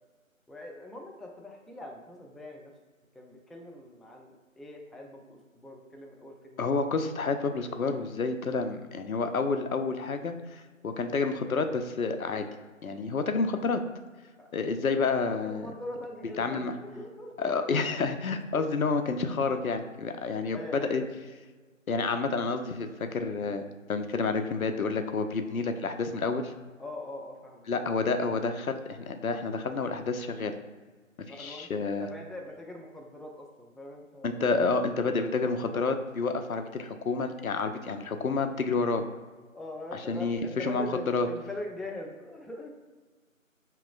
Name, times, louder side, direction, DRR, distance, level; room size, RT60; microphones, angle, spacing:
voice 1, 0.5-2.8 3.1-6.6 14.4-14.5 15.4-17.3 20.5-21.1 26.8-27.9 31.3-34.6 39.5-42.7, left 1 dB, ahead, 0 dB, 0.3 m, -42 dB
voice 2, 6.6-12.5 12.8-13.8 14.5-15.7 16.4-16.7 17.4-21.0 21.9-23.6 23.9-26.5 27.7-30.5 31.3-32.1 34.2-39.0 39.9-41.3, left 4 dB, 85° left, 7 dB, 0.5 m, -29 dB
4.8 x 2.9 x 2.3 m, 1.4 s
figure-of-eight pair, 175°, 41 cm